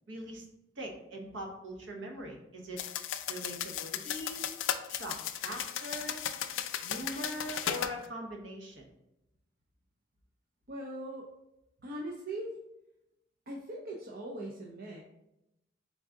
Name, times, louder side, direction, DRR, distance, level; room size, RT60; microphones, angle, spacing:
voice 1, 0.1-0.5 0.8-2.8 3.3-4.4 4.9-6.2 6.8-8.9, equal, 70° right, 1 dB, 1.0 m, -41 dB
sound 1, 2.8-8.0, left 9 dB, 80° left, 0.4 m, -36 dB
voice 2, 10.7-11.3 11.8-12.6 13.5-15.0, right 1 dB, 50° right, -1 dB, 0.6 m, -40 dB
3.9 x 3.6 x 3.7 m, 0.88 s
head